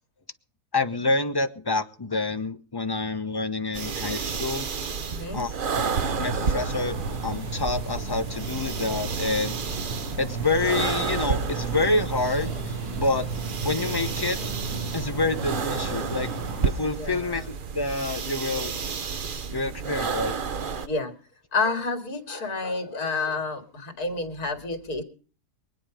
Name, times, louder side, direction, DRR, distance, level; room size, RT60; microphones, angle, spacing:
voice 1, 0.7-4.7 5.3-5.9 6.2-9.6 10.2-13.3 13.6-14.4 14.9-16.3 16.6-18.7 19.5-20.4, left 3 dB, 20° left, 8 dB, 0.8 m, -27 dB
sound 1, 3.7-20.9, right 5 dB, 45° right, 0.8 m, -31 dB
voice 2, 5.1-5.4 16.9-17.4 20.8-21.1 21.5-25.0, left 3 dB, 70° left, 5 dB, 2.7 m, -29 dB
sound 2, 5.7-16.7, right 3 dB, 75° right, 2.9 m, -34 dB
23.5 x 9.4 x 5.0 m, 0.40 s
omnidirectional pair, 1.6 m